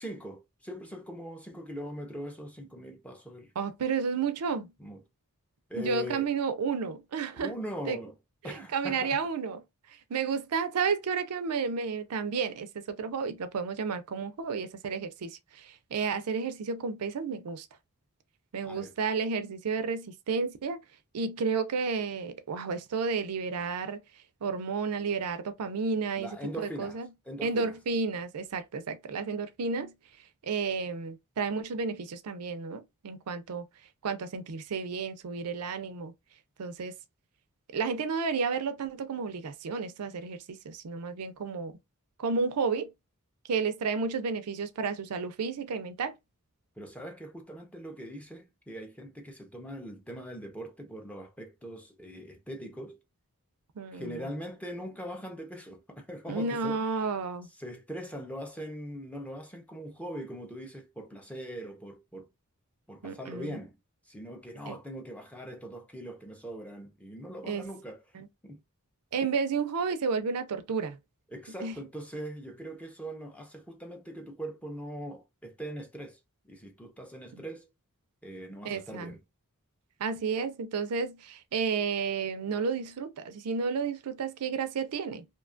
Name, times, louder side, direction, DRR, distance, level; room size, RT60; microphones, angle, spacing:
voice 1, 0.0-3.5 4.8-5.0 5.7-6.3 7.3-8.2 8.4-9.2 18.6-18.9 26.2-27.0 27.3-27.8 46.8-53.0 53.9-57.1 57.6-62.3 62.9-63.8 64.1-68.0 68.4-68.6 71.3-76.2 76.4-77.7 78.2-79.2, equal, 5° left, 0.5 m, -41 dB
voice 2, 3.6-4.7 5.8-7.5 7.9-8.0 8.4-9.6 9.9-17.7 18.5-20.8 21.1-24.0 24.4-27.1 27.4-29.9 30.4-33.7 34.0-36.1 36.6-36.9 37.7-41.7 42.2-42.9 43.5-46.1 53.8-54.2 56.3-57.5 63.0-63.6 64.7-64.8 67.5-67.6 68.1-68.3 69.1-71.0 71.6-71.7 78.6-79.1 80.0-85.2, right 5 dB, 85° right, 0.5 m, -32 dB
2.7 x 2.2 x 2.5 m
head